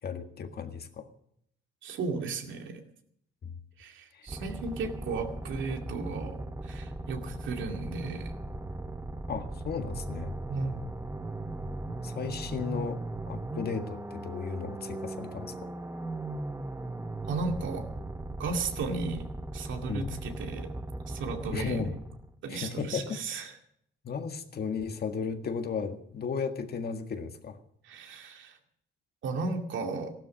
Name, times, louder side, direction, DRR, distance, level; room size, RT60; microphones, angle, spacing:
voice 1, 0.0-1.1 3.4-3.5 4.1-4.3 9.3-10.3 12.0-13.0 13.3-15.7 19.9-20.1 21.5-21.9 22.5-23.2 24.0-27.6, left 5 dB, 55° left, 6 dB, 1.8 m, -35 dB
voice 2, 1.8-2.8 3.8-8.3 10.5-10.8 17.3-17.8 18.4-19.3 19.5-20.7 21.1-21.9 22.4-23.5 27.8-28.6 29.2-30.1, right 4 dB, 75° right, 4 dB, 2.3 m, -35 dB
sound 1, 4.3-22.3, right 2 dB, 15° right, 1.0 m, -38 dB
15.0 x 12.5 x 6.4 m, 0.70 s
cardioid pair, 90°, 20 cm